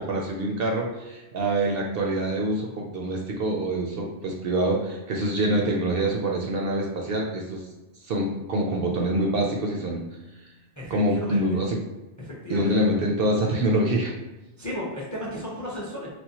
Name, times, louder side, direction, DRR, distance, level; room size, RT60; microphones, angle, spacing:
voice 1, 0.0-7.6 8.0-10.0 10.9-11.8 12.5-14.1, right 1 dB, 65° right, 0 dB, 0.7 m, -25 dB
voice 2, 10.8-11.6 12.2-12.7 14.6-16.1, left 1 dB, 20° left, -5 dB, 0.5 m, -34 dB
4.2 x 2.1 x 2.8 m, 1.1 s
omnidirectional pair, 1.2 m